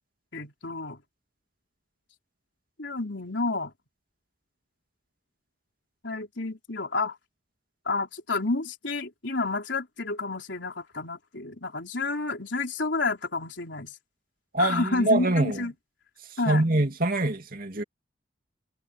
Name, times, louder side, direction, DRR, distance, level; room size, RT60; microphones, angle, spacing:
voice 1, 0.3-1.0 2.8-3.7 6.0-7.2 7.9-13.9 14.6-15.7 16.4-16.6, left 3 dB, 65° left, 3.9 m, -30 dB
voice 2, 14.5-15.6 16.5-17.8, right 2 dB, 45° right, 2.6 m, -24 dB
head